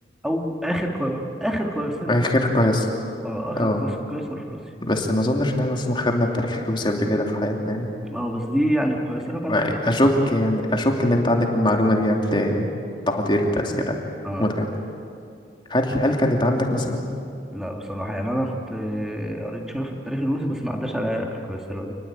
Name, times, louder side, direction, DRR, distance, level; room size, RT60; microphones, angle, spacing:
voice 1, 0.2-2.1 3.2-4.6 8.0-10.0 14.2-14.5 17.5-22.0, equal, 5° right, 1 dB, 2.4 m, -27 dB
voice 2, 2.0-3.0 3.6-3.8 4.8-7.9 9.5-12.7 13.1-13.9 14.4-14.7 15.7-17.0, left 1 dB, 25° left, 2 dB, 2.7 m, -22 dB
28.0 x 20.5 x 8.9 m, 2.4 s
head